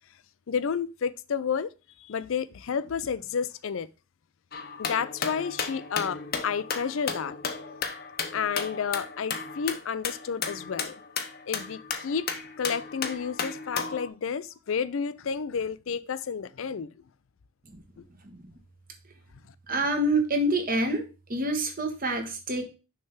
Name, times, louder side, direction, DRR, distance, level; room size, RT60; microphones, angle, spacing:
voice 1, 0.5-3.9 4.8-7.4 8.3-11.0 11.5-12.3 12.6-17.0 18.0-18.1, left 6 dB, 65° left, 0.4 m, -31 dB
sound 1, 4.5-14.1, left 5 dB, 45° left, 0.8 m, -34 dB
voice 2, 19.7-21.0 21.3-22.6, right 1 dB, 40° right, 1.3 m, -27 dB
6.4 x 3.4 x 5.7 m
head